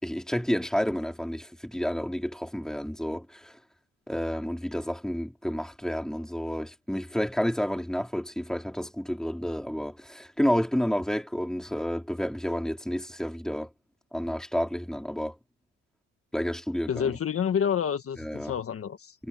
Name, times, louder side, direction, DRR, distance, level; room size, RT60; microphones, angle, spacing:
voice 1, 0.0-3.6 4.1-13.7 14.1-15.4 16.3-17.2 18.2-18.5 19.2-19.3, equal, ahead, 4.0 m, -30 dB
voice 2, 16.9-19.2, left 8 dB, 50° left, 1.5 m, -28 dB
cardioid pair, 90°, 30 cm